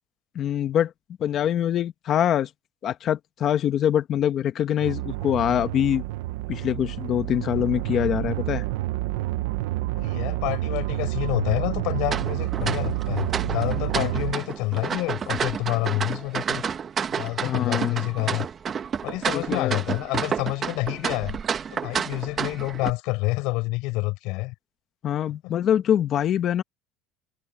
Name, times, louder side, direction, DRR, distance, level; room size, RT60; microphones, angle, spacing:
voice 1, 0.3-0.9 1.2-2.5 2.8-6.0 6.5-8.6 13.9-14.1 17.4-18.0 19.3-19.8 25.0-26.6, left 10 dB, 40° left, 1.2 m, -24 dB
sound 1, 4.8-14.3, right 17 dB, 90° right, 0.8 m, -29 dB
voice 2, 9.9-16.6 17.1-18.5 19.0-21.4 21.7-24.5, left 23 dB, 65° left, 5.9 m, -28 dB
sound 2, 12.1-22.9, right 7 dB, 30° right, 1.1 m, -30 dB
cardioid pair, 145°, 0 cm